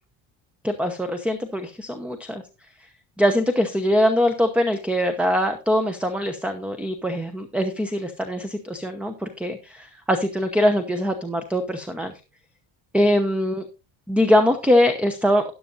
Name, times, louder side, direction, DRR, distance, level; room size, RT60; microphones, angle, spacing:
voice 1, 0.6-2.4 3.2-12.1 12.9-13.6 14.1-15.4, equal, ahead, 8 dB, 0.9 m, -22 dB
13.0 x 11.0 x 2.6 m, 0.30 s
cardioid pair, 130°, 48 cm